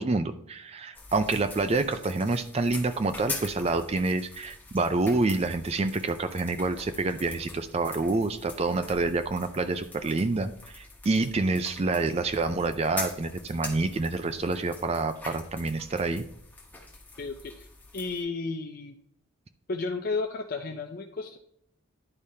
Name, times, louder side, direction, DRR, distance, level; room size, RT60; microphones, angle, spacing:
voice 1, 0.0-16.2, right 3 dB, 30° right, 10 dB, 0.4 m, -27 dB
sound 1, 0.9-18.2, left 3 dB, 10° left, 1.0 m, -43 dB
voice 2, 17.2-17.7 17.9-18.9 19.7-21.4, left 3 dB, 45° left, 2 dB, 0.5 m, -33 dB
10.5 x 5.0 x 2.7 m, 0.72 s
head